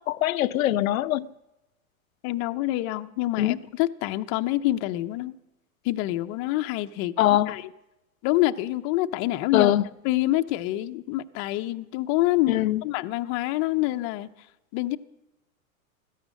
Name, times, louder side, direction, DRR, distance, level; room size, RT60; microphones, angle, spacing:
voice 1, 0.1-1.3 3.4-3.6 7.2-7.5 9.5-9.8 12.5-12.8, left 13 dB, 75° left, 0.6 m, -22 dB
voice 2, 2.2-5.3 5.8-7.1 7.5-7.7 8.2-9.7 10.0-14.3 14.7-15.0, left 16 dB, 30° left, 0.6 m, -26 dB
16.0 x 13.5 x 6.4 m
hypercardioid pair, 125°, 42 cm